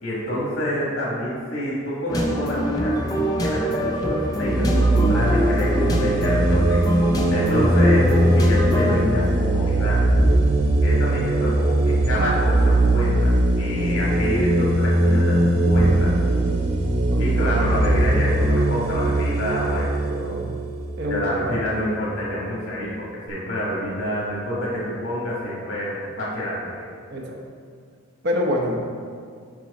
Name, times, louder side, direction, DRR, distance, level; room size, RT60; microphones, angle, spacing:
voice 1, 0.0-6.8 7.3-10.0 10.8-16.1 17.2-19.9 21.1-26.8, equal, 75° left, -7 dB, 1.7 m, -27 dB
sound 1, 2.1-9.0, equal, 15° left, 0.6 m, -24 dB
sound 2, 4.4-21.9, right 1 dB, 30° right, 0.5 m, -20 dB
voice 2, 20.1-20.5 21.0-21.5 27.1-27.3 28.2-28.8, left 1 dB, 50° right, -1 dB, 0.9 m, -26 dB
6.1 x 5.4 x 4.1 m, 2.1 s
head